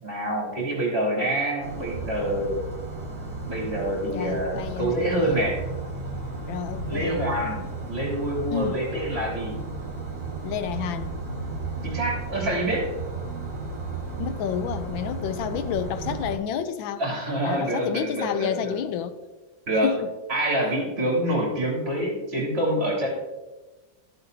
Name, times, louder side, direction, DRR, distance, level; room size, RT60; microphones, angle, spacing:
voice 1, 0.0-2.6 3.5-5.6 6.9-9.6 11.8-12.9 17.0-18.7 19.7-19.9 20.3-23.2, right 1 dB, 30° right, 2.9 m, -26 dB
sound 1, 1.6-16.4, right 3 dB, 50° right, 2.2 m, -34 dB
voice 2, 4.1-5.4 6.5-7.2 8.5-8.8 10.4-11.1 14.2-17.0 17.4-19.2 19.8-20.1, left 9 dB, 85° left, 1.3 m, -30 dB
13.0 x 7.7 x 2.6 m
omnidirectional pair, 2.1 m